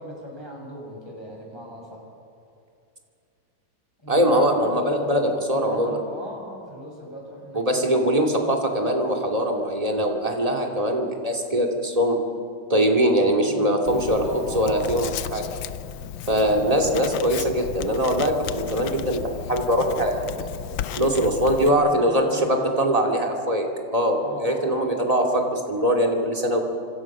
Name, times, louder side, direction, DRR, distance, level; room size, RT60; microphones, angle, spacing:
voice 1, 0.0-2.0 4.0-4.3 4.6-7.8 13.5-15.1 21.0-22.8 24.2-24.7, equal, 10° left, -2 dB, 6.7 m, -38 dB
voice 2, 4.1-6.0 7.5-12.2 12.7-14.2 14.5-15.4 16.3-20.5 20.9-23.7 23.9-26.6, equal, 15° right, 1 dB, 2.7 m, -22 dB
Writing, 13.9-21.7, left 10 dB, 75° left, 1.4 m, -34 dB
28.0 x 26.5 x 6.1 m, 2.5 s
omnidirectional pair, 2.2 m